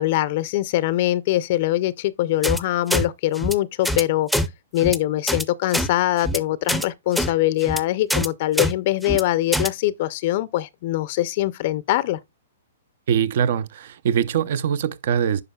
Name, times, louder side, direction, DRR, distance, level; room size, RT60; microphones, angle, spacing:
voice 1, 0.0-4.3 4.7-12.2, left 15 dB, 50° left, 0.4 m, -23 dB
sound 1, 2.4-2.6 2.9-3.0 3.3-3.5 3.8-4.0 4.3-4.5 4.8-5.0 5.3-5.4 5.7-5.9 6.2-6.4 6.7-6.8 7.1-7.3 7.6-7.8 8.1-8.3 8.6-8.7 9.0-9.2 9.5-9.7, equal, ahead, 0.5 m, -23 dB
voice 2, 13.1-15.4, right 8 dB, 60° right, 0.6 m, -22 dB
9.5 x 5.3 x 2.2 m
hypercardioid pair, 130°, 0 cm